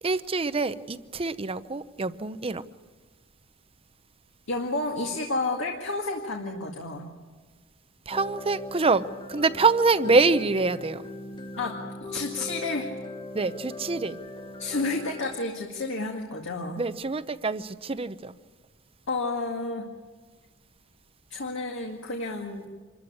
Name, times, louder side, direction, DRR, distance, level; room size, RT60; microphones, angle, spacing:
voice 1, 0.0-2.6 8.1-11.1 13.3-14.2 16.8-18.4, right 3 dB, 25° right, 0.7 m, -25 dB
voice 2, 4.5-7.1 11.6-11.8 12.1-12.9 14.6-16.8 19.1-19.9 21.3-22.7, left 2 dB, 65° left, 2.1 m, -30 dB
sound 1, 8.1-15.4, left 2 dB, 20° left, 1.0 m, -40 dB
26.5 x 14.0 x 8.6 m
head